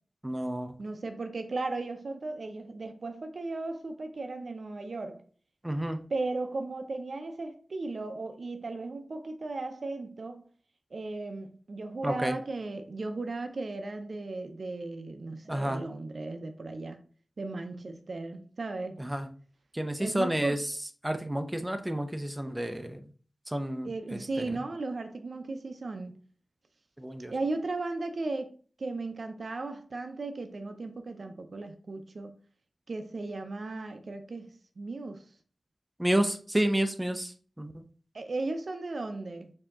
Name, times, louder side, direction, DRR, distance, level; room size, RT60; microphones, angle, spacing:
voice 1, 0.2-0.7 5.6-6.0 12.0-12.3 15.5-15.8 19.0-19.3 19.7-20.6 21.0-23.0 23.5-23.9 27.0-27.3 36.0-37.3 37.6-37.8, right 1 dB, 10° right, 0.5 m, -30 dB
voice 2, 0.8-5.3 6.1-10.4 10.9-17.0 17.4-19.0 20.0-20.6 23.8-26.2 27.3-28.5 28.8-32.3 32.9-35.3 38.1-39.5, right 3 dB, 70° right, 0.5 m, -36 dB
4.6 x 2.8 x 3.6 m
wide cardioid pair, 65°, 0 cm